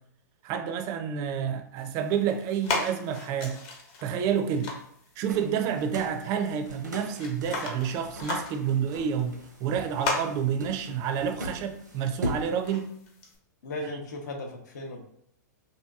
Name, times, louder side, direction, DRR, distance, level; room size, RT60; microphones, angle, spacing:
voice 1, 0.4-3.6 4.0-4.7 5.2-13.0 13.8-13.9, right 8 dB, 35° right, 0.4 m, -29 dB
sound 1, 1.8-13.4, left 3 dB, 40° left, 0.8 m, -38 dB
sound 2, 5.3-12.5, equal, 90° right, 0.6 m, -40 dB
voice 2, 13.6-15.0, left 1 dB, 70° left, 0.7 m, -36 dB
2.8 x 2.6 x 2.3 m
hypercardioid pair, 115°, 10 cm